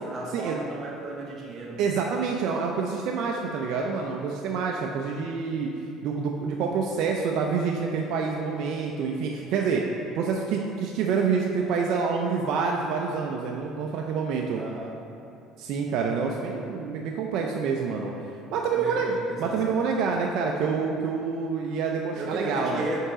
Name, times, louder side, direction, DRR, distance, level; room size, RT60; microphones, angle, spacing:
voice 1, 0.0-1.8 14.5-15.0 18.7-19.8 22.1-23.0, right 2 dB, 35° right, -3 dB, 0.7 m, -35 dB
voice 2, 1.8-5.7 6.0-9.8 10.2-14.6 15.6-18.1 18.5-22.8, right 5 dB, 65° right, 0 dB, 0.4 m, -27 dB
5.3 x 4.9 x 3.6 m, 2.6 s
cardioid pair, 125°, 0 cm